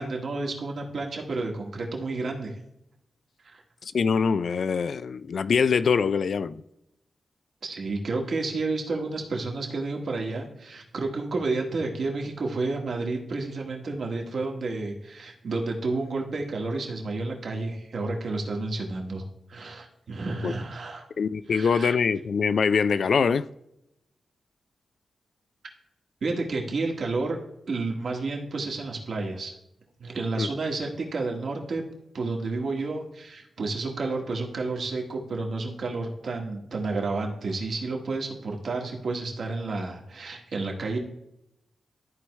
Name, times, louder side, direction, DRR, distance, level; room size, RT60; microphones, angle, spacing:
voice 1, 0.0-2.5 3.5-3.6 7.6-19.2 19.5-21.0 21.5-21.9 26.2-27.4 27.7-29.5 30.0-31.8 32.1-41.0, right 3 dB, 65° right, 1.7 m, -30 dB
voice 2, 3.9-6.6 20.4-20.5 21.2-23.5 30.4-30.5, left 6 dB, 65° left, 0.3 m, -23 dB
13.0 x 4.7 x 3.2 m
cardioid pair, 90°, 0 cm